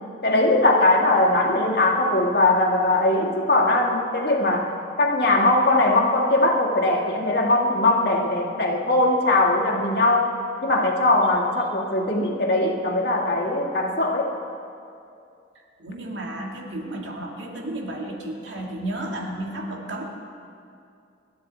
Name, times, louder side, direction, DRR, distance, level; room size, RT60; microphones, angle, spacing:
voice 1, 0.2-10.4 10.6-14.3, left 2 dB, 55° left, -1 dB, 1.9 m, -20 dB
voice 2, 15.8-20.1, right 1 dB, 80° right, 0 dB, 2.3 m, -32 dB
26.0 x 12.5 x 4.2 m, 2.5 s
head